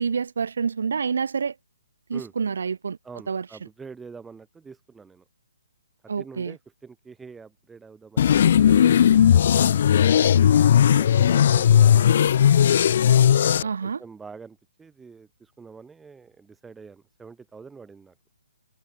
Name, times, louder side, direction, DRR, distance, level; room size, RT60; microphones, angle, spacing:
voice 1, 0.0-1.5 2.1-3.0 3.3-3.5 6.1-6.5 13.6-14.0, right 5 dB, 70° right, 3.0 m, -27 dB
voice 2, 3.0-5.2 6.0-9.8 10.5-12.1 13.5-18.1, right 5 dB, 5° right, 7.2 m, -45 dB
sound 1, 8.2-13.6, left 9 dB, 50° left, 1.8 m, -17 dB
hypercardioid pair, 155°, 0 cm